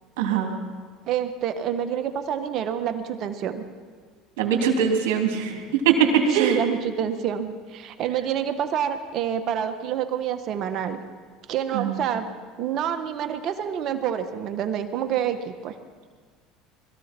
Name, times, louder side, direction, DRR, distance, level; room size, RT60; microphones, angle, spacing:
voice 1, 0.2-0.5 4.4-6.6 11.7-12.0, right 7 dB, 80° right, 2 dB, 2.9 m, -22 dB
voice 2, 1.1-3.6 6.3-11.0 11.5-12.3 12.6-15.7, right 9 dB, 55° right, 8 dB, 1.3 m, -27 dB
22.0 x 14.5 x 4.5 m, 1.5 s
supercardioid pair, 90°, 0 cm